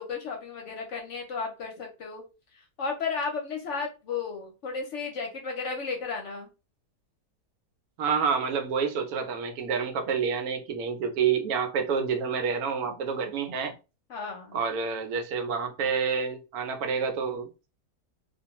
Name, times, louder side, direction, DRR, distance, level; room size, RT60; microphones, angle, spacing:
voice 1, 0.0-2.2 2.8-6.5 14.1-14.6, left 5 dB, 60° left, 0.9 m, -33 dB
voice 2, 8.0-13.7 14.5-17.7, right 6 dB, 80° right, 1.0 m, -28 dB
2.4 x 2.2 x 2.9 m
omnidirectional pair, 1.6 m